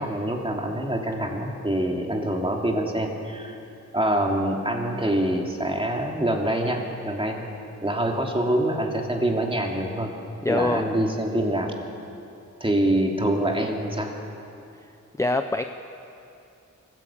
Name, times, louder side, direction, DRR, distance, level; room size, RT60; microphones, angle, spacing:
voice 1, 0.0-3.6 3.9-7.5 7.8-10.1 10.5-11.7 12.6-14.1, right 1 dB, 15° right, 1 dB, 2.9 m, -25 dB
voice 2, 10.4-10.8 15.2-15.6, left 2 dB, 10° left, 7 dB, 0.7 m, -24 dB
23.5 x 15.5 x 8.6 m, 2.7 s
wide cardioid pair, 110°, 31 cm